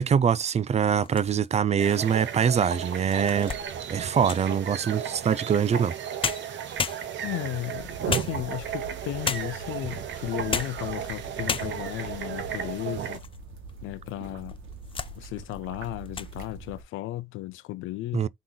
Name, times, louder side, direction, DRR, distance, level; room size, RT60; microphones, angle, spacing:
voice 1, 0.0-3.5 3.9-6.0 18.1-18.3, right 7 dB, 35° right, 0.4 m, -24 dB
sound 1, 0.9-1.7 2.3-2.4 2.9-4.6 5.9-6.0 6.2-7.4 8.1-8.8 9.2-9.7 10.3-10.9 11.1-11.2 11.5-12.0 12.6-13.4 13.7-13.8 14.5-15.2 15.5-15.8 16.1-16.3, left 6 dB, 25° left, 0.5 m, -33 dB
sound 2, 1.8-13.2, right 8 dB, 65° right, 0.9 m, -34 dB
voice 2, 7.2-13.2 13.8-14.6 15.2-18.2, left 15 dB, 90° left, 0.6 m, -34 dB
sound 3, 7.7-16.8, right 2 dB, 85° right, 1.4 m, -44 dB
3.8 x 2.9 x 3.9 m
cardioid pair, 90°, 20 cm